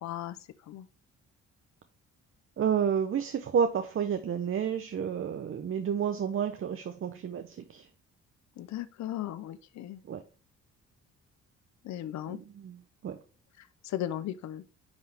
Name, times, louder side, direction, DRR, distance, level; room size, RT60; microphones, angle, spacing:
voice 1, 0.0-0.4 0.7-0.9 8.6-10.0 11.8-12.4 13.8-14.6, left 12 dB, 65° left, 0.6 m, -36 dB
voice 2, 2.6-7.9 10.1-10.2 12.3-13.2, right 7 dB, 45° right, 0.8 m, -30 dB
9.8 x 4.0 x 3.4 m
cardioid pair, 90°, 30 cm